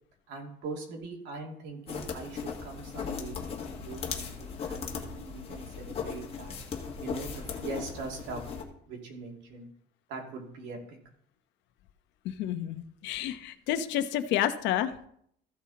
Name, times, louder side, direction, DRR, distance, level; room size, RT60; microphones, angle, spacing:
voice 1, 0.3-3.3 3.6-6.5 7.0-8.4 8.9-9.7 10.1-11.0, right 3 dB, 90° right, 1 dB, 2.6 m, -41 dB
sound 1, 1.9-8.6, left 6 dB, 35° left, 1.6 m, -38 dB
voice 2, 12.2-15.1, left 11 dB, 85° left, 10 dB, 0.9 m, -30 dB
14.5 x 5.8 x 4.2 m, 0.66 s
cardioid pair, 160°, 18 cm